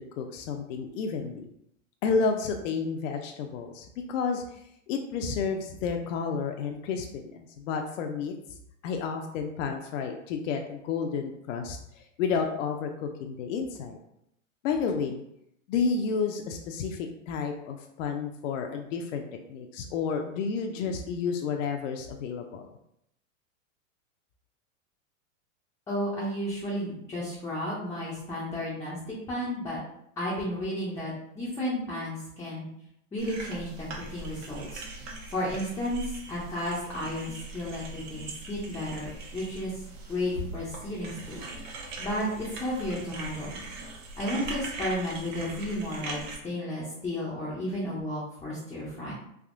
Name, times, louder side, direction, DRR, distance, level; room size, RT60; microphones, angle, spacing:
voice 1, 0.2-1.5 2.0-8.3 8.8-14.0 14.6-15.2 15.7-22.6, left 5 dB, 70° left, 4 dB, 0.5 m, -31 dB
voice 2, 25.9-29.8 30.2-32.7 33.1-34.8 35.3-36.0 36.3-39.7 40.1-41.4 42.0-43.6 44.2-49.1, left 1 dB, 10° left, -7 dB, 0.4 m, -33 dB
sound 1, 33.2-46.3, right 2 dB, 70° right, 1.0 m, -41 dB
3.5 x 2.6 x 2.5 m, 0.77 s
hypercardioid pair, 130°, 39 cm